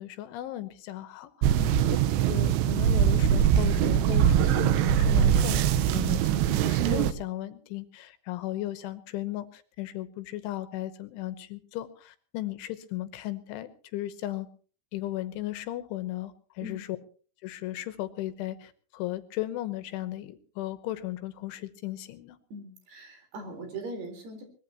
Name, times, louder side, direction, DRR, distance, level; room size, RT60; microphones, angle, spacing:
voice 1, 0.0-1.6 2.3-14.5 14.9-16.9 17.4-22.4, left 15 dB, 80° left, 11 dB, 3.3 m, -36 dB
sound 1, 1.4-7.1, right 9 dB, 75° right, 2.8 m, -22 dB
voice 2, 22.5-24.4, right 1 dB, 55° right, 5 dB, 5.9 m, -40 dB
22.5 x 21.0 x 3.0 m, 0.42 s
omnidirectional pair, 5.7 m